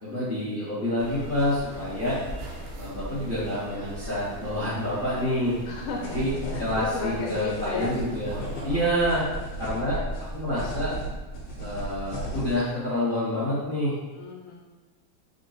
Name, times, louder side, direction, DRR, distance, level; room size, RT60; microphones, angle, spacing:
voice 1, 0.0-2.2 2.8-5.6 6.1-6.3 6.6-8.4 8.6-9.3 9.6-10.0 10.3-10.9 11.6-13.9, left 1 dB, 45° left, -10 dB, 0.7 m, -27 dB
sound 1, 1.0-8.9, right 1 dB, 80° right, 0.7 m, -40 dB
voice 2, 5.7-6.2 6.5-8.3 14.1-14.6, left 4 dB, 90° left, -1 dB, 1.4 m, -34 dB
sound 2, 6.0-12.6, right 1 dB, 70° left, 1.4 m, -35 dB
3.7 x 2.2 x 3.9 m, 1.3 s
omnidirectional pair, 2.2 m